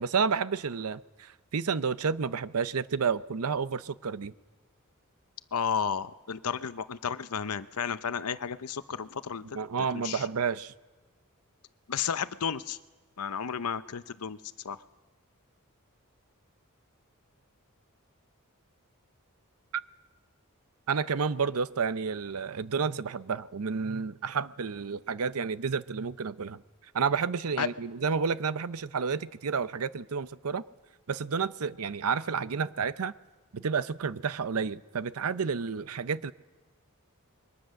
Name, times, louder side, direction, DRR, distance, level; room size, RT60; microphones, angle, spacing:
voice 1, 0.0-4.3 9.5-10.7 20.9-26.6 26.9-30.6 31.1-33.1 33.5-36.3, right 5 dB, 75° right, 15 dB, 0.6 m, -30 dB
voice 2, 5.5-9.6 9.9-10.3 11.9-12.8 13.2-14.4 14.6-14.8 27.6-27.7, left 7 dB, 85° left, 13 dB, 0.7 m, -32 dB
26.5 x 22.5 x 6.4 m, 1.2 s
head